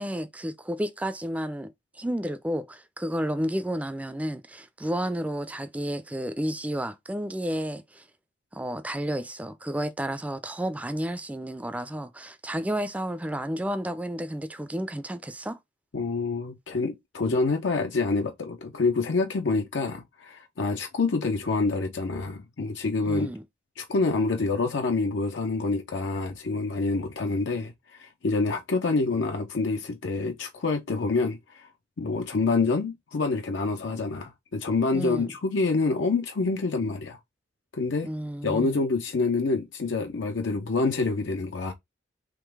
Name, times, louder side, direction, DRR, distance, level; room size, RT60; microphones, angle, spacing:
voice 1, 0.0-1.7 2.0-8.0 8.5-15.6 23.1-23.4 34.9-35.3 38.0-38.8, equal, 10° right, 0.4 m, -31 dB
voice 2, 15.9-23.3 23.8-31.7 32.0-37.2 37.7-38.1 38.4-41.7, left 3 dB, 85° left, 0.6 m, -27 dB
3.7 x 3.0 x 4.6 m
head